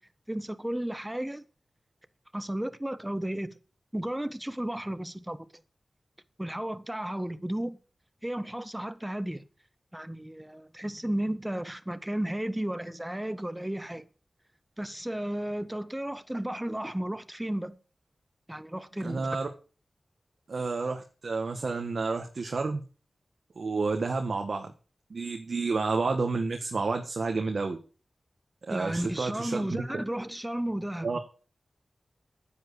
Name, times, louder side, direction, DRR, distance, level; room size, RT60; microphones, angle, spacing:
voice 1, 0.3-1.4 2.3-3.6 3.9-5.5 6.4-7.8 8.2-9.4 9.9-14.0 14.8-17.8 18.5-19.3 28.7-31.2, right 1 dB, 10° right, 1.3 m, -33 dB
voice 2, 19.0-19.5 20.5-22.8 23.5-24.7 25.1-27.8 28.6-29.6 31.0-31.2, right 4 dB, 70° right, 1.6 m, -30 dB
9.9 x 9.2 x 6.9 m
cardioid pair, 45°, 0 cm